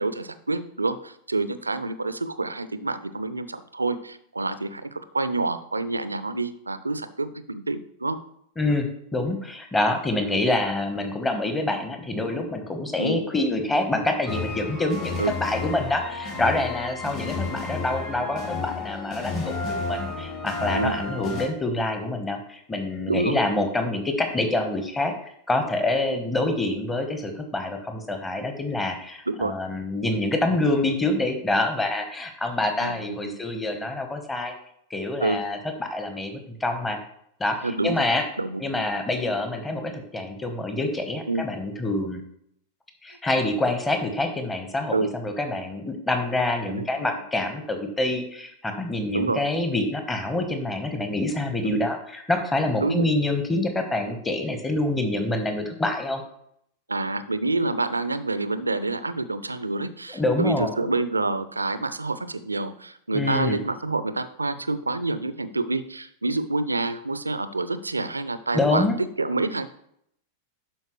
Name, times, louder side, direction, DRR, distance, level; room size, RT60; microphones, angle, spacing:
voice 1, 0.0-8.2 13.0-13.2 15.2-15.3 17.1-17.5 20.7-21.0 23.1-23.4 29.3-29.5 32.8-33.4 35.2-35.4 37.6-38.0 38.4-38.6 41.3-41.4 44.9-45.1 46.7-46.8 49.1-49.4 51.7-51.8 52.8-53.0 56.9-68.9 69.2-69.7, right 3 dB, 80° right, 13 dB, 0.5 m, -27 dB
voice 2, 8.6-25.1 25.5-34.5 34.9-37.0 37.4-38.2 38.6-42.2 43.0-56.2 60.1-60.7 63.1-63.6 68.5-69.0, left 2 dB, 10° left, 5 dB, 1.2 m, -26 dB
sound 1, 14.3-21.5, left 3 dB, 35° left, 2.4 m, -32 dB
11.5 x 4.6 x 3.1 m, 0.71 s
figure-of-eight pair, 90°, 0 cm